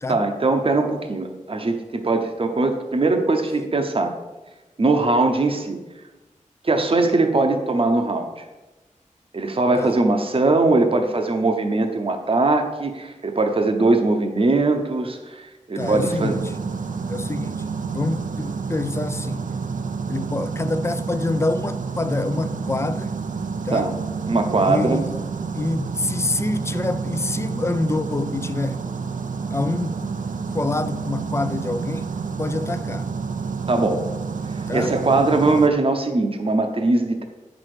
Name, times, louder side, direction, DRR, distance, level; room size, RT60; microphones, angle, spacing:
voice 1, 0.1-4.1 4.8-5.8 6.6-8.4 9.3-16.4 23.7-23.9 24.3-25.0 33.7-34.0 34.7-37.2, right 3 dB, 45° right, 0.8 m, -21 dB
voice 2, 15.8-16.5 17.1-17.7 17.9-19.5 20.1-23.1 23.6-23.9 24.6-25.1 25.5-28.8 29.5-30.0 30.5-32.1 32.4-33.1 34.7-34.9, left 2 dB, 20° left, 0.4 m, -26 dB
sound 1, 15.8-35.7, right 5 dB, 75° right, 0.5 m, -29 dB
8.5 x 6.1 x 4.9 m
wide cardioid pair, 90°, 13 cm